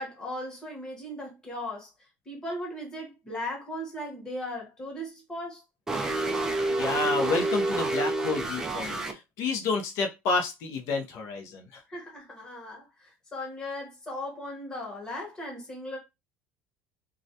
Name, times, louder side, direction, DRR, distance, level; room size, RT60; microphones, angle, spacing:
voice 1, 0.0-1.9 2.3-5.6 11.9-16.0, left 1 dB, 15° left, 1.0 m, -37 dB
sound 1, 5.9-9.1, right 2 dB, 10° right, 0.3 m, -28 dB
voice 2, 6.7-11.8, left 3 dB, 60° left, 0.6 m, -30 dB
2.3 x 2.1 x 2.7 m
cardioid pair, 165°, 6 cm